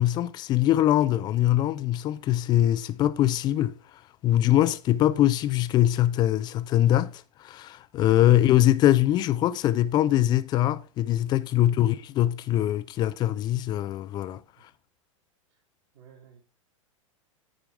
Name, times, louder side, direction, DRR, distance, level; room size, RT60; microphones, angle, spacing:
voice 1, 0.0-3.7 4.2-14.4, left 13 dB, 25° left, 0.4 m, -23 dB
voice 2, 11.5-11.8 14.6-14.7 15.5-15.6 15.9-16.4, right 7 dB, 50° right, 2.5 m, -55 dB
9.9 x 4.8 x 3.4 m
figure-of-eight pair, 95°, 17 cm